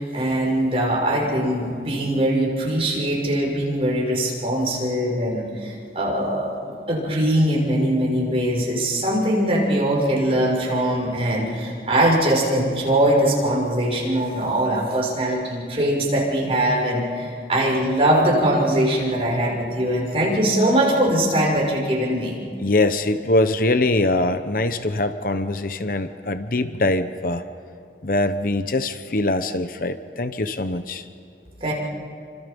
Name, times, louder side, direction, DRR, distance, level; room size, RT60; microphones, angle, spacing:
voice 1, 0.0-22.4 31.6-31.7, right 1 dB, 35° right, -3 dB, 6.4 m, -21 dB
voice 2, 22.6-27.4 28.0-31.0, left 2 dB, 50° left, 10 dB, 0.9 m, -23 dB
28.5 x 26.0 x 5.4 m, 2.5 s
head